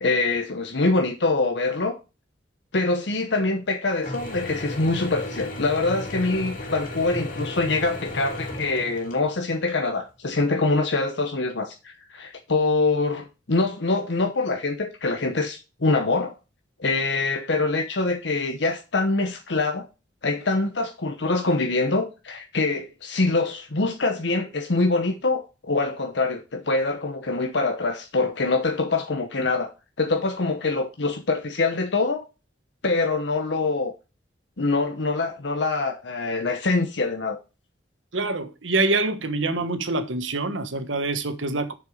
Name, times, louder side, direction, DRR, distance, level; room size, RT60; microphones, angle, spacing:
voice 1, 0.0-2.0 2.7-16.4 16.8-19.9 20.2-29.7 30.0-32.3 32.8-33.9 34.6-37.4, left 3 dB, 65° left, 1.0 m, -24 dB
Mechanisms / Drill, 4.0-9.5, left 1 dB, 50° left, 3.0 m, -35 dB
voice 2, 38.1-41.7, right 2 dB, 90° right, 1.4 m, -25 dB
6.9 x 6.7 x 5.0 m
head